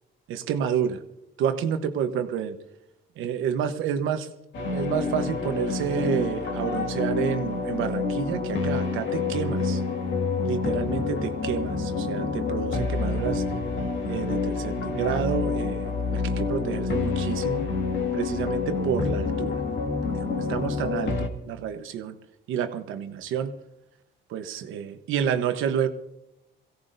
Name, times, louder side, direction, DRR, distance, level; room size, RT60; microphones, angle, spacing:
voice 1, 0.3-1.0 1.4-2.6 3.2-4.3 4.7-9.8 10.4-13.4 14.1-17.7 18.1-19.6 20.3-22.2 22.5-23.5 24.3-25.9, right 8 dB, 90° right, 8 dB, 1.1 m, -29 dB
sound 1, 4.5-21.3, left 4 dB, 70° left, 1.9 m, -28 dB
23.0 x 16.5 x 2.7 m, 0.87 s
cardioid pair, 90°, 20 cm